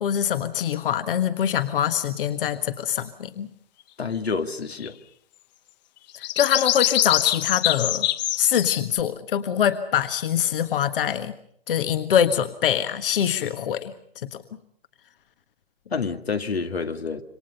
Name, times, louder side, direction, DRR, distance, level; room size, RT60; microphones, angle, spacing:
voice 1, 0.0-3.5 6.2-8.1 8.4-11.3 11.7-14.4, left 9 dB, 60° left, 9 dB, 1.6 m, -24 dB
voice 2, 4.0-5.0 15.9-17.2, left 5 dB, 85° left, 6 dB, 2.2 m, -28 dB
sound 1, 4.8-4.9 6.1-9.0, left 14 dB, 45° left, 1.1 m, -24 dB
27.5 x 25.0 x 5.4 m, 0.66 s
figure-of-eight pair, 120°, 31 cm